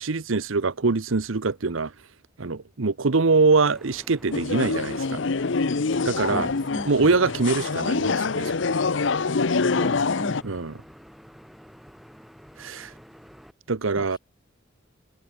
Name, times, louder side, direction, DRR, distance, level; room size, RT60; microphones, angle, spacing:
voice 1, 0.0-1.9 2.4-5.2 6.0-6.5 6.9-8.5 10.4-10.7 12.6-12.9 13.7-14.2, right 4 dB, 80° right, 0.9 m, -23 dB
sound 1, 3.5-13.5, equal, ahead, 6.9 m, -49 dB
sound 2, 4.3-10.4, left 4 dB, 65° left, 0.8 m, -25 dB
voice 2, 6.3-6.9 9.8-10.4 13.9-14.1, equal, 20° left, 6.4 m, -35 dB
head